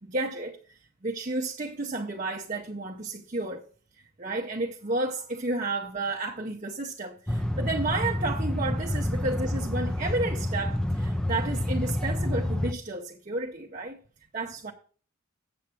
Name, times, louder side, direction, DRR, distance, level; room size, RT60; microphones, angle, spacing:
voice 1, 0.0-3.7 4.2-14.0 14.3-14.7, right 2 dB, 35° right, 0.7 m, -32 dB
sound 1, 7.3-12.7, left 1 dB, 5° left, 0.5 m, -28 dB
7.7 x 7.3 x 4.3 m
head